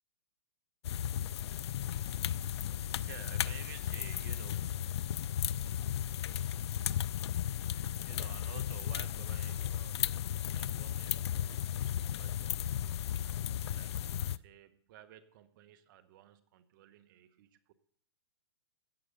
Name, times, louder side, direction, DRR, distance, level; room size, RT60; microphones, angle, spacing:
sound 1, 0.8-14.4, left 10 dB, 80° left, 0.5 m, -35 dB
voice 1, 3.1-4.7 8.0-10.0 10.5-12.6 13.5-17.7, right 11 dB, 50° right, 10 dB, 1.3 m, -54 dB
15.0 x 5.1 x 8.5 m, 0.62 s
hypercardioid pair, 150°, 14 cm